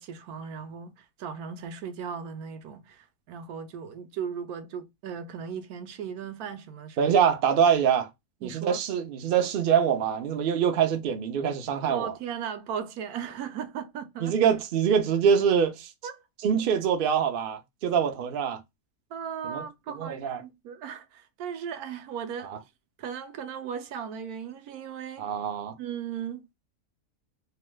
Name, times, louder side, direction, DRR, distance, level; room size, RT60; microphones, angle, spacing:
voice 1, 0.0-7.1 8.4-8.8 11.9-14.4 16.0-16.1 19.1-22.5 23.0-25.3 25.8-26.5, right 7 dB, 80° right, 1.1 m, -37 dB
voice 2, 7.0-8.1 8.4-12.1 14.2-15.9 16.4-18.6 19.4-20.4 22.4-22.6 25.2-25.8, right 7 dB, 60° right, 0.5 m, -24 dB
2.9 x 2.2 x 3.1 m
omnidirectional pair, 1.6 m